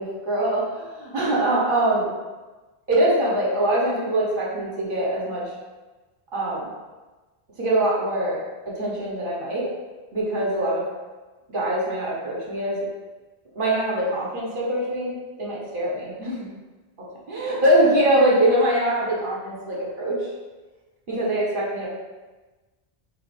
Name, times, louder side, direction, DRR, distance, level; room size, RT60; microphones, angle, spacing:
voice 1, 0.0-2.1 2.9-5.4 6.3-6.7 7.6-8.4 8.7-9.7 10.1-10.8 11.5-12.8 13.5-16.5 17.3-20.3 21.1-21.9, right 1 dB, 55° right, -5 dB, 1.1 m, -23 dB
4.7 x 3.4 x 2.6 m, 1.2 s
omnidirectional pair, 1.1 m